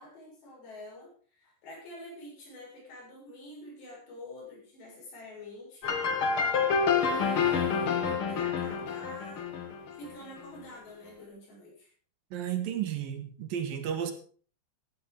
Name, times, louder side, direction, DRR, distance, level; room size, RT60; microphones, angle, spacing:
voice 1, 0.0-6.0 7.0-9.6 9.9-11.9, left 1 dB, 80° left, -3 dB, 9.2 m, -47 dB
sound 1, 5.8-10.4, left 6 dB, 50° left, 1.6 m, -28 dB
voice 2, 12.3-14.1, right 9 dB, 65° right, 8 dB, 3.0 m, -33 dB
15.5 x 11.0 x 5.3 m, 0.42 s
omnidirectional pair, 4.8 m